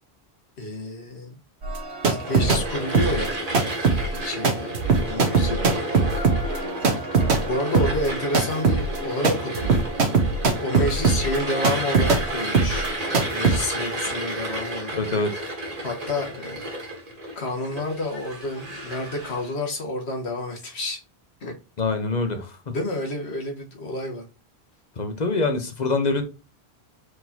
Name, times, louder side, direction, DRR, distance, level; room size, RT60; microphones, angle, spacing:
voice 1, 0.6-1.3 2.0-3.4 4.1-4.7 5.0-5.9 7.4-9.7 10.6-12.9 13.3-15.0 15.8-16.6 17.3-21.0 21.4-21.5 22.7-24.3, left 1 dB, 90° left, 1.6 m, -29 dB
sound 1, 1.6-2.6 2.9-12.3 12.5-12.9 13.1-13.6, right 4 dB, 90° right, 1.2 m, -21 dB
sound 2, 2.2-19.5, right 1 dB, 35° right, 1.4 m, -32 dB
voice 2, 15.0-15.3 21.8-22.7 25.0-26.2, left 3 dB, 45° left, 0.9 m, -25 dB
4.7 x 4.0 x 2.7 m
omnidirectional pair, 1.1 m